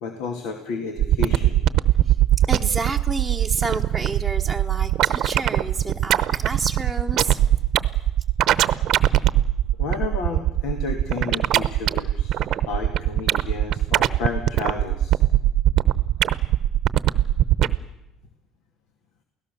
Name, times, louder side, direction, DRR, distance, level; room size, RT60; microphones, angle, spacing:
voice 1, 0.0-1.6 9.8-12.4 12.7-15.2, left 4 dB, 75° left, 5 dB, 2.3 m, -31 dB
sound 1, 1.0-17.8, right 13 dB, 55° right, 0.8 m, -20 dB
voice 2, 2.5-7.4, right 3 dB, ahead, -2 dB, 1.1 m, -29 dB
29.0 x 17.5 x 6.9 m, 0.96 s
cardioid pair, 120°, 0 cm